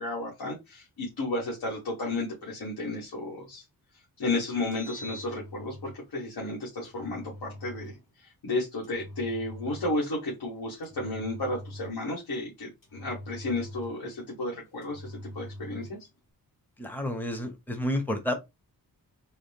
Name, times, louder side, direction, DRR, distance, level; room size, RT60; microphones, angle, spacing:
voice 1, 0.0-3.6 4.2-16.0, left 2 dB, 85° left, 1.6 m, -33 dB
Engine, 4.5-6.0 6.8-8.0 8.8-10.1 10.8-12.1 12.8-14.2 14.8-16.0, equal, 55° left, 1.5 m, -43 dB
voice 2, 16.8-18.3, left 1 dB, 5° left, 0.7 m, -30 dB
4.0 x 2.2 x 3.4 m
wide cardioid pair, 165°, 38 cm